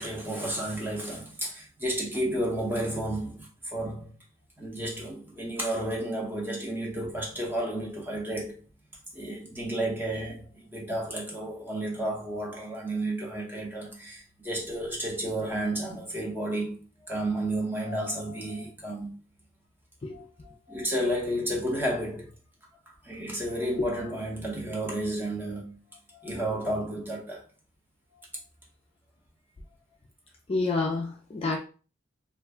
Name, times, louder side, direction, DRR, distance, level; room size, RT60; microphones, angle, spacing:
voice 1, 0.0-4.1 4.6-8.6 9.1-16.8 17.0-19.1 20.1-22.3 23.0-25.8 26.1-27.4 28.1-28.2, right 1 dB, 10° right, 0.8 m, -32 dB
voice 2, 30.5-31.6, left 3 dB, 30° left, 0.4 m, -28 dB
2.5 x 2.1 x 3.4 m
head